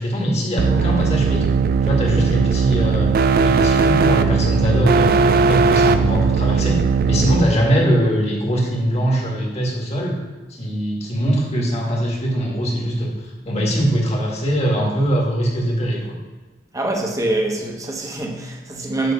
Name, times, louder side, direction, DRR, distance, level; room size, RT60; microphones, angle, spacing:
voice 1, 0.0-1.5 1.8-3.1 3.4-6.8 7.1-10.2 10.5-16.0, equal, 35° left, 1.7 m, -21 dB
sound 1, 0.6-7.4, right 5 dB, 55° right, 0.4 m, -17 dB
voice 2, 16.7-19.1, right 2 dB, 20° right, 1.0 m, -24 dB
9.3 x 3.3 x 6.3 m
head